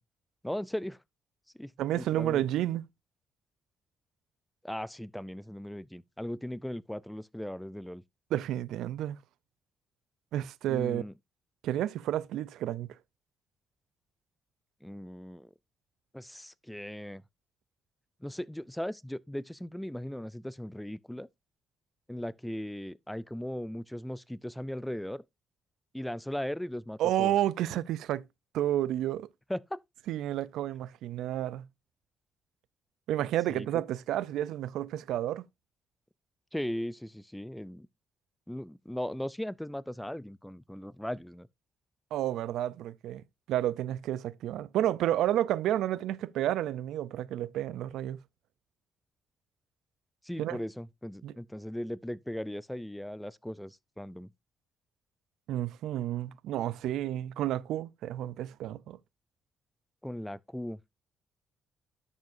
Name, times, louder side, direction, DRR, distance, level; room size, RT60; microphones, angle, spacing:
voice 1, 0.4-1.0 1.6-2.4 4.6-8.0 10.7-11.1 14.8-15.5 16.1-17.2 18.2-21.3 22.1-25.2 25.9-27.3 29.5-29.8 33.5-33.8 36.5-37.9 38.5-41.5 50.2-54.3 60.0-60.8, left 1 dB, 5° left, 0.4 m, -38 dB
voice 2, 1.8-2.8 8.3-9.2 10.3-11.0 11.6-13.0 27.0-28.3 28.5-29.3 30.1-31.7 33.1-35.4 42.1-43.2 43.5-48.2 50.4-50.6 51.2-51.3 55.5-59.0, right 12 dB, 85° right, 0.4 m, -31 dB
10.5 x 7.2 x 2.6 m
cardioid pair, 90°, 0 cm